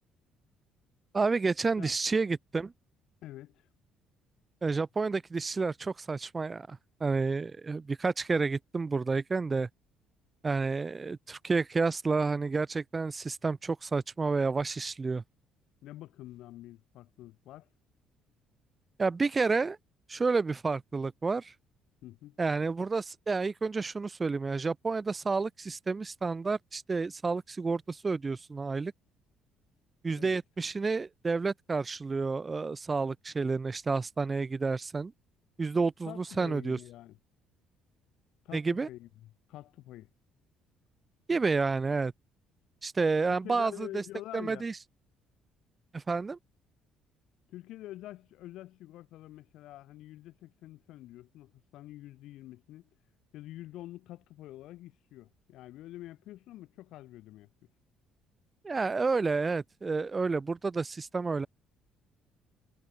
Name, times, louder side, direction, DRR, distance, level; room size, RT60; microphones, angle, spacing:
voice 1, 1.1-2.7 4.6-9.7 10.4-15.2 19.0-19.8 20.1-21.5 22.4-28.9 30.0-35.1 35.6-36.8 38.5-38.9 41.3-42.1 42.8-44.0 44.3-44.8 45.9-46.4 58.6-61.5, right 4 dB, 25° right, 0.4 m, -30 dB
voice 2, 3.2-3.7 15.8-17.7 22.0-22.4 30.2-30.4 36.1-37.2 38.4-40.1 43.4-44.7 47.5-52.9 53.3-57.5, left 15 dB, 75° left, 5.8 m, -47 dB
cardioid pair, 95°, 0 cm